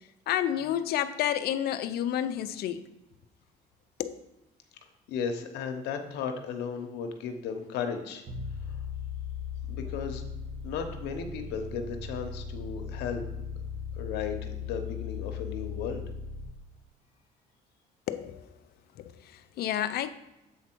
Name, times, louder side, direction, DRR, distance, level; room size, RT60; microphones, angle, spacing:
voice 1, 0.3-2.8 4.0-4.2 18.1-18.4 19.0-20.1, left 11 dB, 70° left, 0.5 m, -30 dB
voice 2, 5.1-8.2 9.7-10.2 10.6-13.2 14.0-16.0, left 6 dB, 85° left, 0.9 m, -35 dB
sound 1, 8.3-16.5, left 6 dB, 50° right, 1.5 m, -38 dB
7.4 x 4.2 x 4.5 m
cardioid pair, 110°, 17 cm